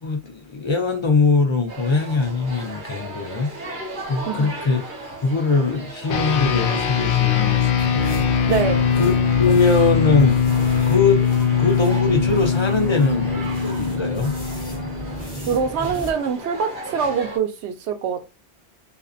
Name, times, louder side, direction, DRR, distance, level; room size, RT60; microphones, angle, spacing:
voice 1, 0.0-3.5 4.1-4.8 5.2-8.5 9.0-9.1 9.4-10.4 10.9-11.2 11.6-14.4, left 4 dB, 50° left, 0.3 m, -21 dB
sound 1, 1.7-17.4, right 1 dB, 50° right, 1.0 m, -36 dB
sound 2, 6.1-15.7, left 7 dB, 70° left, 0.8 m, -21 dB
sound 3, 7.8-16.2, right 2 dB, 5° left, 1.0 m, -35 dB
voice 2, 8.5-8.9 15.5-18.3, right 6 dB, 85° right, 0.9 m, -24 dB
2.5 x 2.3 x 2.4 m
omnidirectional pair, 1.1 m